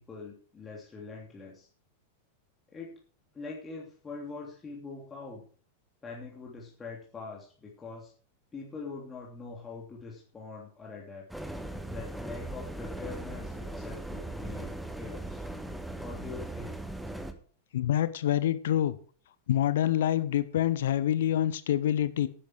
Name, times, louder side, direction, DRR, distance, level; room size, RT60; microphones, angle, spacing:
voice 1, 0.0-1.7 2.7-2.9 3.3-5.4 6.0-8.1 8.5-11.2 11.8-15.4 16.0-16.8, left 4 dB, 15° left, -3 dB, 3.1 m, -43 dB
sound 1, 11.3-17.3, right 1 dB, ahead, 1.5 m, -39 dB
voice 2, 17.7-19.0 19.5-22.3, left 11 dB, 60° left, 14 dB, 1.0 m, -26 dB
11.5 x 10.0 x 4.8 m, 0.42 s
figure-of-eight pair, 90°, 0 cm